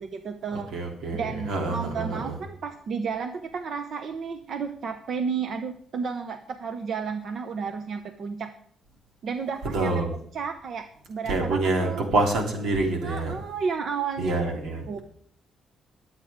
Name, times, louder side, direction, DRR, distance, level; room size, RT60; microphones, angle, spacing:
voice 1, 0.0-0.7 1.1-8.5 9.2-10.0 10.3-12.0 13.0-14.4 14.9-15.0, right 6 dB, 55° right, 7 dB, 0.8 m, -32 dB
voice 2, 0.7-2.3 9.7-10.1 11.2-13.3 14.2-15.0, right 2 dB, 85° right, 2 dB, 3.3 m, -26 dB
22.5 x 8.2 x 3.7 m, 0.62 s
cardioid pair, 150°, 0 cm